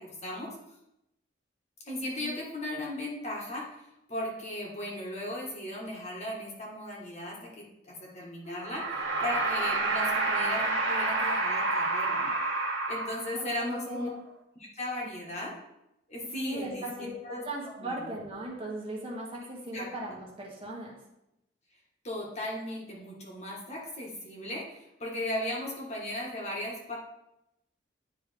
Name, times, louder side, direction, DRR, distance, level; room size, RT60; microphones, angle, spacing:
voice 1, 1.9-3.6 4.1-8.8 9.2-12.4 12.9-14.1 14.8-15.5 16.1-18.1 19.7-20.2 22.0-24.6 25.0-27.0, left 1 dB, 35° left, -3 dB, 1.4 m, -37 dB
sound 1, 8.5-13.6, right 3 dB, 80° right, 1.9 m, -29 dB
voice 2, 13.3-14.1 16.4-21.0, right 1 dB, 30° right, -3 dB, 1.3 m, -38 dB
9.9 x 3.4 x 3.4 m, 0.85 s
head